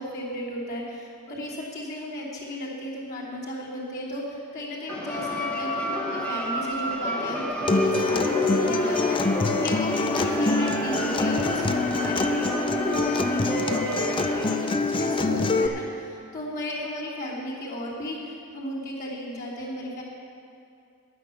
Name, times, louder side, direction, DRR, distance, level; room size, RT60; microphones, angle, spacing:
voice 1, 0.0-20.0, left 1 dB, 45° left, -7 dB, 3.2 m, -34 dB
sound 1, 4.9-14.6, left 1 dB, 5° left, 1.0 m, -30 dB
Acoustic guitar, 7.7-15.7, left 3 dB, 25° left, 0.5 m, -25 dB
10.5 x 9.6 x 7.0 m, 2.5 s
head